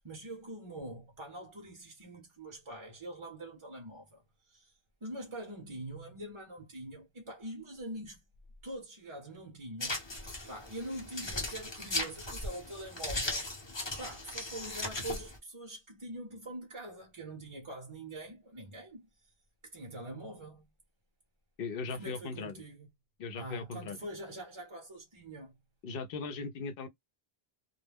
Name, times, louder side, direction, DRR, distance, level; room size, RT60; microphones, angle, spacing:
voice 1, 0.0-8.2 8.6-13.5 14.0-19.1 19.6-20.6 21.9-22.9 23.3-25.6, right 1 dB, 35° right, 0.7 m, -44 dB
sound 1, 9.8-15.4, left 2 dB, 30° left, 0.8 m, -37 dB
voice 2, 21.6-22.5 23.2-24.0 25.8-26.9, left 4 dB, 70° left, 0.7 m, -38 dB
2.2 x 2.1 x 3.2 m
omnidirectional pair, 1.0 m